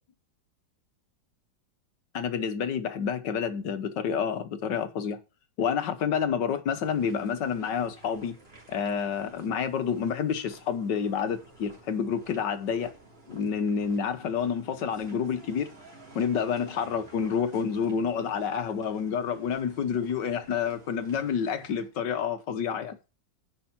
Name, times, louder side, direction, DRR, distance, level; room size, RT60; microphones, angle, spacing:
voice 1, 2.1-5.2 5.6-8.3 8.7-12.9 13.3-15.7 16.2-23.0, left 7 dB, 70° left, 1.7 m, -29 dB
sound 1, 6.7-21.9, right 2 dB, 30° right, 3.2 m, -52 dB
10.5 x 5.5 x 7.3 m
omnidirectional pair, 2.0 m